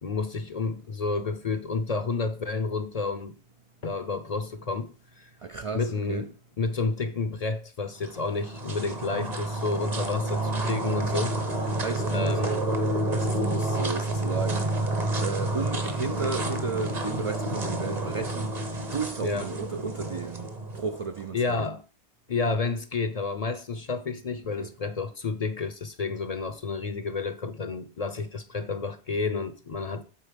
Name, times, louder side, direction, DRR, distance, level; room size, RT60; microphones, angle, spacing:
voice 1, 0.0-3.4 3.8-5.3 5.7-6.3 6.6-11.4 11.6-11.8 12.1-12.7 19.2-19.5 21.3-21.8 22.3-30.0, left 4 dB, 45° left, 0.6 m, -30 dB
voice 2, 5.4-6.3 11.8-12.4 13.0-14.8 15.2-18.5 18.9-20.5 20.7-21.6 24.6-24.7, right 5 dB, 60° right, 0.3 m, -33 dB
sound 1, 8.0-21.3, right 2 dB, 40° right, 1.1 m, -29 dB
8.4 x 4.0 x 5.1 m
omnidirectional pair, 1.1 m